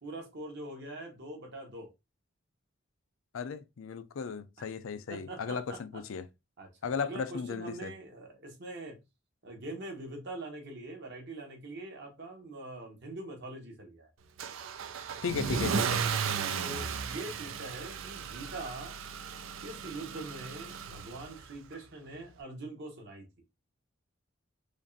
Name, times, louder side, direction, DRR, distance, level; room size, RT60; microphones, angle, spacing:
voice 1, 0.0-1.9 5.1-6.0 6.6-9.0 9.4-14.1 16.0-19.0 19.6-23.2, right 2 dB, 60° right, 1.3 m, -43 dB
voice 2, 3.3-6.2 6.8-7.9 15.2-16.0, left 5 dB, 80° left, 0.4 m, -36 dB
Car / Engine starting / Accelerating revving vroom, 14.4-21.5, right 6 dB, 80° right, 0.4 m, -35 dB
5.1 x 2.5 x 2.6 m
head